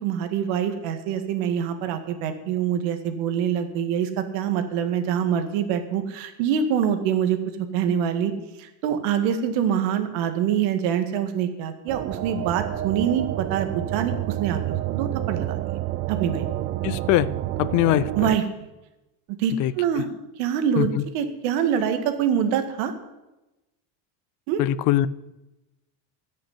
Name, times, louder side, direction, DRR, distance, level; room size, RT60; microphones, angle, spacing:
voice 1, 0.0-7.4 7.7-8.3 8.6-15.6 16.1-16.5 18.2-18.4 19.3-20.1 20.4-22.9 24.5-24.6, right 8 dB, 70° right, 2.0 m, -25 dB
sound 1, 11.9-18.4, right 14 dB, 30° right, 0.4 m, -29 dB
voice 2, 16.8-17.3 17.6-18.1 19.6-19.7 20.8-20.9 24.6-25.1, left 15 dB, 45° left, 0.5 m, -21 dB
13.5 x 6.6 x 9.7 m
cardioid pair, 155°, 42 cm